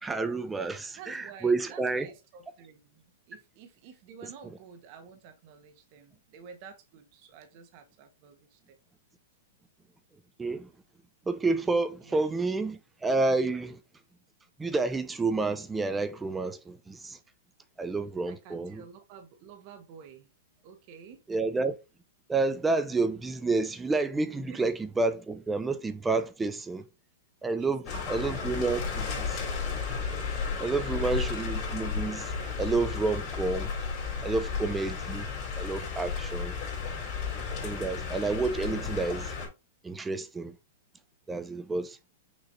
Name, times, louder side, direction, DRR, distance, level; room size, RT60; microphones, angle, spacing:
voice 1, 0.0-2.1 10.4-10.7 11.3-13.8 14.6-17.2 17.8-18.8 21.3-21.8 22.3-26.8 27.4-27.8 28.1-29.4 30.6-33.7 34.2-35.3 35.6-36.5 37.5-39.3 39.8-40.6 41.3-42.0, right 3 dB, 10° right, 0.5 m, -29 dB
voice 2, 0.9-8.8 12.1-12.2 18.2-20.3 20.6-21.2 24.5-24.7 27.6-29.1 30.8-31.1, right 6 dB, 45° right, 1.1 m, -50 dB
sound 1, 27.8-39.5, left 5 dB, 40° left, 2.7 m, -33 dB
6.2 x 3.1 x 2.7 m
hypercardioid pair, 130°, 0 cm